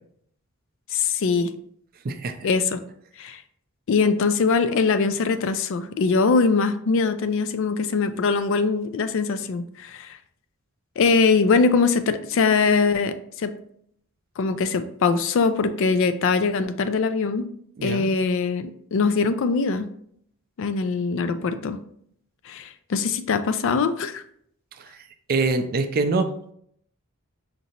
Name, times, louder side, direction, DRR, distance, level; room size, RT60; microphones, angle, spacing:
voice 1, 0.9-1.5 2.4-2.8 3.2-3.4 3.9-10.2 11.0-13.5 14.4-17.5 17.8-19.9 20.6-21.8 22.5-24.2, left 4 dB, 60° left, 11 dB, 0.4 m, -22 dB
voice 2, 2.0-2.5 17.8-18.1 24.8-24.9 25.3-26.5, right 3 dB, 45° right, 9 dB, 0.4 m, -25 dB
5.1 x 2.7 x 2.9 m, 0.66 s
head